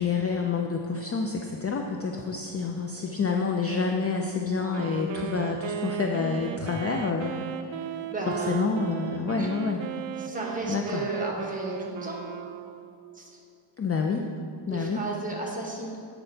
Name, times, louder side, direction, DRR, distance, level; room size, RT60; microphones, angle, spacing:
voice 1, 0.0-7.3 7.6-7.8 8.5-9.8 10.7-11.0 13.8-14.3 14.7-15.0, left 5 dB, 30° left, 2 dB, 0.4 m, -28 dB
Wind instrument woodwind instrument, 4.5-13.2, right 9 dB, 65° right, 0.5 m, -36 dB
voice 2, 8.1-8.6 9.3-9.5 10.2-12.2 13.1-13.4 14.7-16.0, right 1 dB, 15° right, -3 dB, 1.2 m, -34 dB
8.7 x 4.4 x 3.9 m, 2.7 s
wide cardioid pair, 115°, 48 cm